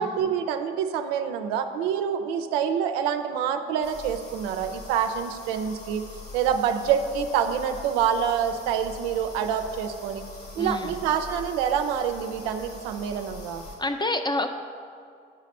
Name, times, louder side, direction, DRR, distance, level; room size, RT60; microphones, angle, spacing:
voice 1, 0.0-6.0 6.3-10.2 10.6-13.6, right 8 dB, 85° right, 7 dB, 0.5 m, -26 dB
sound 1, 3.8-13.8, left 2 dB, 75° left, 1.7 m, -43 dB
voice 2, 10.6-11.0 13.8-14.5, left 2 dB, 15° left, 7 dB, 0.6 m, -27 dB
8.8 x 4.1 x 5.3 m, 2.2 s
hypercardioid pair, 50°, 30 cm